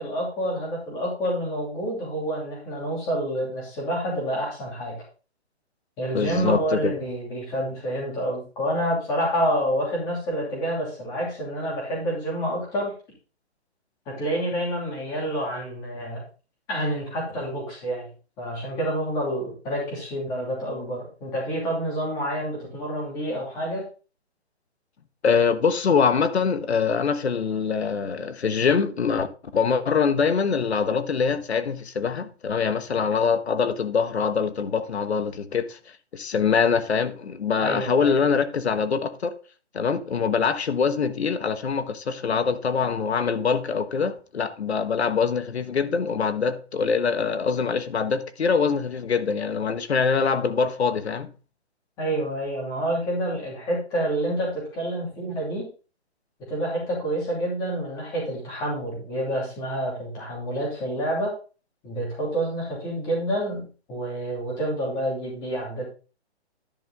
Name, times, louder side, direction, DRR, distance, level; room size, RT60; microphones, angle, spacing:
voice 1, 0.0-4.9 6.0-12.9 14.1-16.2 16.7-18.1 18.4-23.9 37.6-38.1 52.0-55.7 56.5-61.3 61.8-65.9, right 1 dB, 10° left, 2.8 m, -28 dB
voice 2, 6.1-6.9 25.2-29.3 29.5-35.8 36.1-39.3 39.7-51.3, left 5 dB, 70° left, 1.3 m, -24 dB
10.5 x 5.7 x 3.8 m
hypercardioid pair, 175°, 34 cm